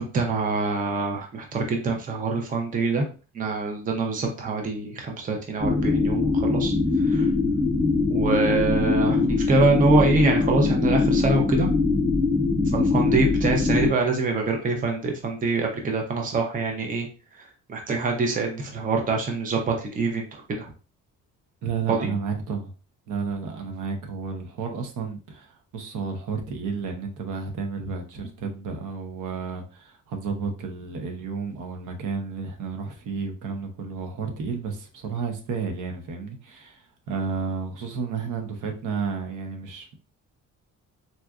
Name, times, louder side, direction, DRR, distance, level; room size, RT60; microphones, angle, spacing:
voice 1, 0.0-3.1 3.3-7.3 8.1-11.7 12.7-17.1 17.4-20.7 21.9-22.1, right 3 dB, 25° right, 0.6 m, -25 dB
sound 1, 5.6-13.9, left 3 dB, ahead, 0.9 m, -22 dB
voice 2, 21.6-22.7 23.1-40.0, right 5 dB, 75° right, 0.8 m, -32 dB
4.1 x 2.4 x 2.3 m
cardioid pair, 160°, 31 cm